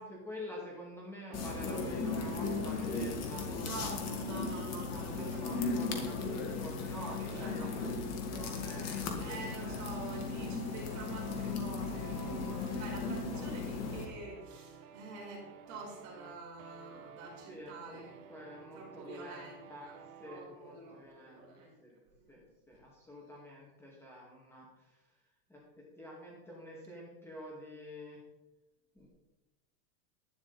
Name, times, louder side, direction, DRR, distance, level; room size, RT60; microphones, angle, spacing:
voice 1, 0.0-4.2 4.9-9.9 12.7-13.5 17.5-19.9 20.2-22.0 22.3-25.0 25.5-25.6 26.0-28.2 29.0-29.1, equal, 5° left, -4 dB, 2.2 m, -48 dB
sound 1, 1.3-14.1, left 4 dB, 35° left, 1.9 m, -36 dB
sound 2, 1.3-20.5, right 7 dB, 70° right, 1.6 m, -53 dB
voice 2, 3.6-5.6 7.2-7.7 9.2-18.4 18.7-20.0 20.2-21.8 22.1-22.4, right 3 dB, 40° right, -1 dB, 4.7 m, -47 dB
11.5 x 9.4 x 4.2 m, 1.1 s
supercardioid pair, 140°, 44 cm